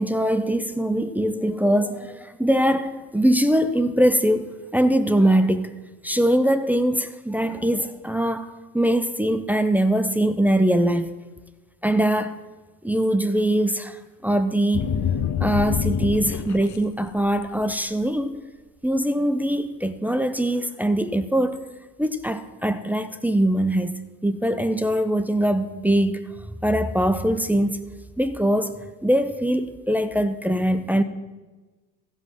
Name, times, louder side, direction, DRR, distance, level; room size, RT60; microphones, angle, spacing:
voice 1, 0.0-11.2 11.8-12.4 12.8-14.9 15.4-18.4 18.8-21.6 22.0-26.3 26.6-27.8 28.2-28.7 29.0-31.0, right 1 dB, 5° right, 0.5 m, -22 dB
sound 1, 14.7-16.8 17.2-17.6, left 8 dB, 40° left, 0.8 m, -25 dB
15.0 x 5.4 x 5.9 m
hypercardioid pair, 60°, 47 cm